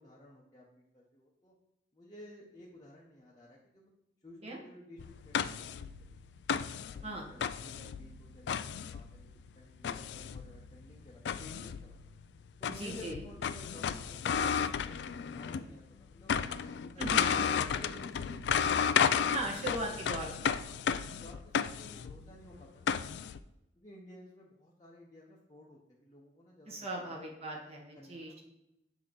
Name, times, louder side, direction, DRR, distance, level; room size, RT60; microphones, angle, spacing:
voice 1, 0.0-1.5 1.9-3.9 4.2-6.4 6.8-8.5 8.8-12.0 12.6-18.6 20.6-20.8 21.2-23.3 23.8-27.2 28.0-28.4, left 1 dB, 20° left, -5 dB, 0.8 m, -54 dB
sound 1, 5.0-15.7 16.0-23.4, left 7 dB, 65° left, 0.3 m, -33 dB
voice 2, 12.7-13.2 17.0-17.5 19.3-20.6 26.7-28.3, right 1 dB, 35° right, -1 dB, 1.4 m, -39 dB
7.5 x 2.9 x 6.0 m, 0.88 s
head